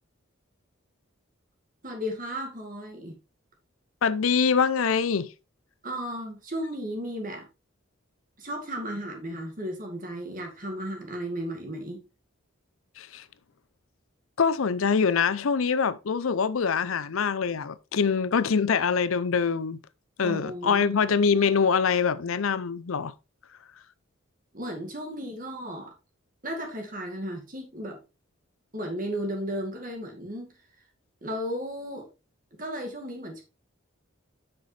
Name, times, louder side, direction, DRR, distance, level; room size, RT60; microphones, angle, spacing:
voice 1, 1.8-3.1 5.8-7.5 8.4-12.0 20.2-20.9 24.5-25.9 26.4-28.0 28.7-30.5 31.2-32.1 32.6-33.4, equal, 40° right, 2.1 m, -34 dB
voice 2, 4.0-5.3 13.0-13.2 14.4-19.8 20.2-23.1, left 6 dB, 80° left, 0.6 m, -24 dB
7.8 x 6.0 x 3.3 m
head